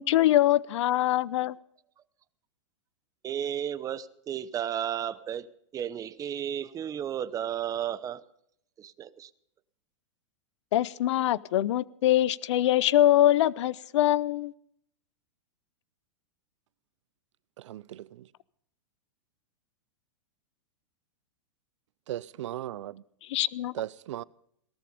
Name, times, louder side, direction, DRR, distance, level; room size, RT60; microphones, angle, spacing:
voice 1, 0.0-1.6 10.7-14.5 23.3-23.7, left 13 dB, 70° left, 0.7 m, -23 dB
voice 2, 3.2-8.2 8.8-9.3, right 9 dB, 20° right, 0.8 m, -33 dB
voice 3, 17.6-18.3 22.1-23.0 23.7-24.2, right 13 dB, 70° right, 0.6 m, -37 dB
18.5 x 13.5 x 5.2 m
hypercardioid pair, 130°, 16 cm